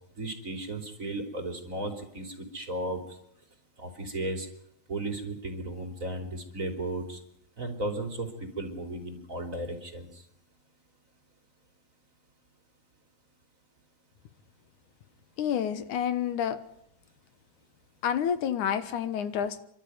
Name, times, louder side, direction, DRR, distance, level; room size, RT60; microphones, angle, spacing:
voice 1, 0.2-3.2 3.8-4.5 4.9-7.2 7.6-10.2, right 2 dB, 25° right, 4 dB, 3.3 m, -35 dB
voice 2, 15.4-16.6 18.0-19.6, left 9 dB, 80° left, 11 dB, 2.8 m, -29 dB
29.5 x 12.5 x 9.4 m, 0.77 s
omnidirectional pair, 3.4 m